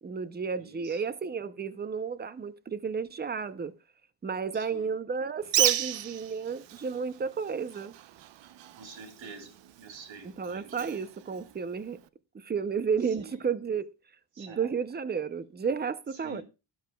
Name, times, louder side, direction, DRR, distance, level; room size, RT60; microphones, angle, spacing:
voice 1, 0.0-3.7 4.2-7.9 10.2-12.0 12.3-13.9 14.4-16.4, right 6 dB, 25° right, 0.5 m, -32 dB
voice 2, 0.5-1.0 4.5-4.9 5.6-5.7 8.8-11.0 13.0-13.4 14.3-14.7 16.2-16.4, right 4 dB, 85° right, 2.6 m, -47 dB
Bird, 5.4-12.1, right 12 dB, 70° right, 0.7 m, -34 dB
12.5 x 11.5 x 2.2 m
wide cardioid pair, 155°, 45 cm